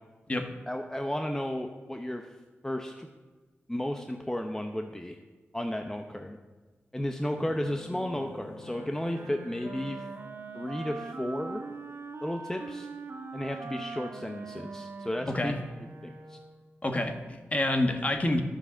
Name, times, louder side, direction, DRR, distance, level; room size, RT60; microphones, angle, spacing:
voice 1, 0.7-2.3 2.6-3.1 3.7-5.2 5.5-6.4 6.9-10.1 10.5-11.6 12.2-12.9 13.3-15.6 16.0-16.4, left 1 dB, 10° left, 5 dB, 0.8 m, -33 dB
sound 1, 7.4-11.3, left 4 dB, 65° left, 1.1 m, -49 dB
Wind instrument woodwind instrument, 8.6-16.7, right 3 dB, 70° right, 1.8 m, -42 dB
voice 2, 16.8-18.4, left 1 dB, 30° left, 5 dB, 1.4 m, -28 dB
11.5 x 6.9 x 7.0 m, 1.3 s
wide cardioid pair, 75°, 4 cm